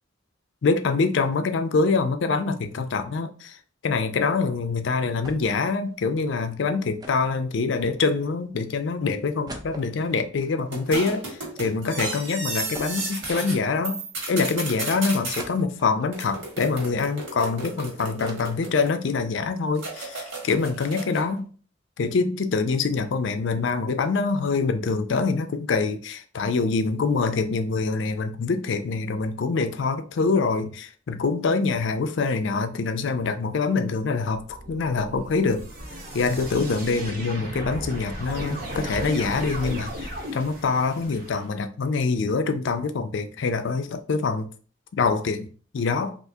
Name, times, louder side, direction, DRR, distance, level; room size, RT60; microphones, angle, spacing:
voice 1, 0.6-3.6 3.8-14.0 14.3-21.5 22.0-35.6 36.1-44.5 44.9-45.5 45.7-46.2, left 4 dB, 70° left, 0.4 m, -25 dB
sound 1, 5.2-5.7 5.9-6.0 7.0-8.3 8.8-8.9 9.2-11.7 12.0-12.1 12.7-13.9 14.4-14.5 15.4-16.2 16.7-17.7 18.0-19.3 19.7-19.8 20.0-20.2, right 1 dB, 20° right, 0.4 m, -43 dB
sound 2, 10.7-13.6 13.8-15.4 16.1-19.1 19.8-21.3, right 2 dB, 75° right, 1.4 m, -33 dB
sound 3, 34.4-41.4, equal, 50° right, 0.9 m, -35 dB
3.5 x 2.5 x 2.7 m
head